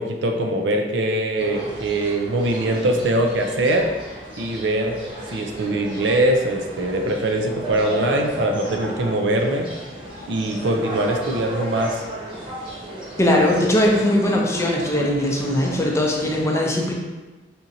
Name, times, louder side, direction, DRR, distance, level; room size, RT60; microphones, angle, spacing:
voice 1, 0.0-3.9 4.4-5.0 5.3-9.7 10.3-12.0, right 1 dB, 80° right, 3 dB, 0.4 m, -22 dB
sound 1, 1.4-16.4, right 1 dB, 30° right, 1.0 m, -34 dB
voice 2, 13.2-16.9, left 1 dB, 15° left, -1 dB, 0.4 m, -20 dB
4.3 x 2.5 x 2.7 m, 1.2 s
head